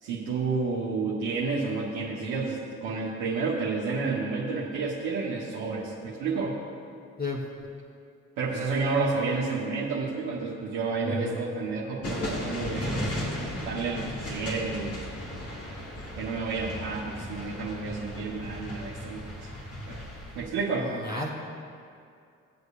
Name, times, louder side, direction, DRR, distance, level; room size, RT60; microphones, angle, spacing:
voice 1, 0.0-6.6 8.4-13.0 13.4-15.0 16.2-19.5 19.9-20.0 20.3-20.9, right 4 dB, 75° right, -5 dB, 1.1 m, -30 dB
voice 2, 11.0-11.4 19.9-20.0 20.8-21.3, left 2 dB, 25° left, -3 dB, 1.1 m, -33 dB
sound 1, 12.0-20.5, left 1 dB, 45° left, 1.9 m, -36 dB
17.5 x 8.0 x 2.4 m, 2.3 s
hypercardioid pair, 45°, 34 cm